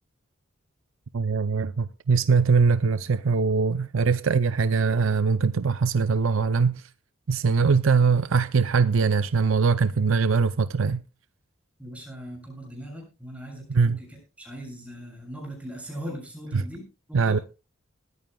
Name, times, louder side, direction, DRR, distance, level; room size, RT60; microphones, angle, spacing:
voice 1, 1.1-6.8 7.3-11.0 13.7-14.0 16.5-16.6 17.1-17.4, right 5 dB, 75° right, 0.6 m, -22 dB
voice 2, 11.8-17.4, equal, 5° right, 7.0 m, -40 dB
20.0 x 14.0 x 2.3 m
head